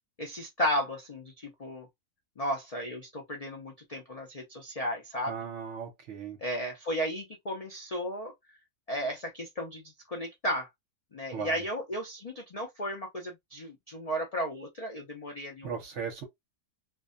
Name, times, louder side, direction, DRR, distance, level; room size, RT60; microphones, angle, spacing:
voice 1, 0.2-1.9 2.4-5.3 6.4-8.3 8.9-10.7 11.1-15.7, equal, 70° left, 0.3 m, -34 dB
voice 2, 5.3-6.4 11.3-11.5 15.6-16.2, right 7 dB, 60° right, 0.9 m, -37 dB
2.5 x 2.2 x 2.4 m
omnidirectional pair, 1.6 m